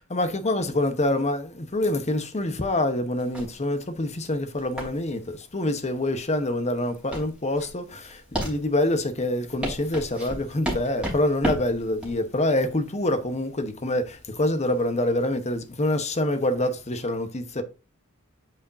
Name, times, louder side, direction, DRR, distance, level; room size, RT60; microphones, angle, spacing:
voice 1, 0.1-5.2 5.5-17.6, left 1 dB, 30° left, 1.0 m, -26 dB
sound 1, 3.2-15.8, right 1 dB, 5° right, 3.2 m, -35 dB
8.5 x 5.0 x 2.7 m
head